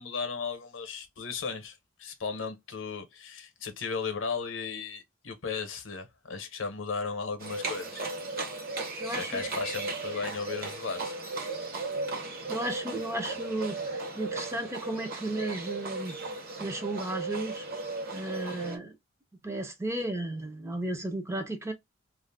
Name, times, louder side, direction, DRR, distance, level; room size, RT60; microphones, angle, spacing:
voice 1, 0.0-8.0 9.0-11.1, left 5 dB, 65° left, 0.7 m, -36 dB
Livestock farm animals working animals, 7.4-18.8, right 3 dB, 50° right, 0.9 m, -36 dB
voice 2, 9.0-9.4 12.5-16.2 16.6-17.7 18.1-19.0 19.4-21.7, right 1 dB, 15° right, 0.4 m, -34 dB
2.4 x 2.1 x 3.3 m
head